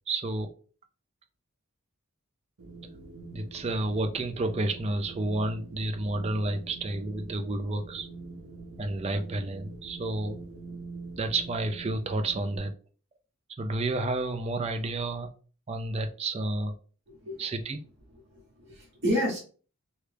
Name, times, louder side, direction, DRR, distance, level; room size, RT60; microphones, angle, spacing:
voice 1, 0.1-0.5 3.3-8.1 8.8-10.4 11.2-12.7 13.6-15.3 15.7-16.7 17.4-17.8, right 2 dB, 30° right, 7 dB, 0.3 m, -30 dB
Wind, 2.6-12.6, right 3 dB, 80° right, 0.8 m, -45 dB
voice 2, 17.1-17.4 18.3-19.4, equal, 50° right, -5 dB, 1.1 m, -30 dB
3.2 x 2.3 x 3.2 m, 0.39 s
head